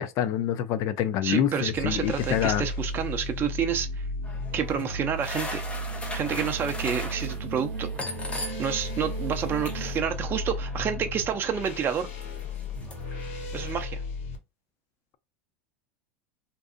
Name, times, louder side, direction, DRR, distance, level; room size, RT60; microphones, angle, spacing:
voice 1, 0.0-2.7, left 10 dB, 50° left, 0.4 m, -26 dB
voice 2, 1.2-4.1 4.5-5.6 6.1-7.9 8.6-12.1 13.5-14.0, right 8 dB, 30° right, 0.5 m, -29 dB
sound 1, 1.5-14.4, left 1 dB, 70° left, 0.9 m, -35 dB
sound 2, 4.2-8.9 9.1-13.9, left 2 dB, 15° left, 0.7 m, -40 dB
sound 3, 4.5-10.0, right 6 dB, 70° right, 0.6 m, -43 dB
2.6 x 2.3 x 2.4 m
hypercardioid pair, 95°, 7 cm